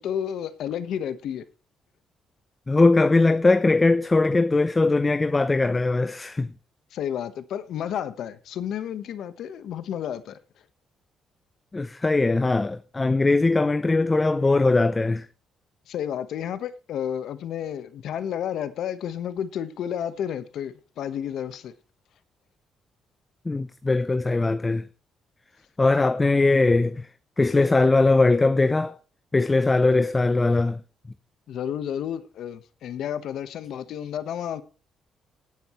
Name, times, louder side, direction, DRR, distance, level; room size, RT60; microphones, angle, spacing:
voice 1, 0.0-1.4 6.9-10.4 15.9-21.7 31.5-34.6, left 9 dB, 75° left, 1.2 m, -31 dB
voice 2, 2.7-6.5 11.7-15.3 23.5-24.9 25.8-27.1 27.4-28.9 29.3-30.8, left 3 dB, 20° left, 0.6 m, -20 dB
18.0 x 9.5 x 3.1 m
cardioid pair, 110°, 0 cm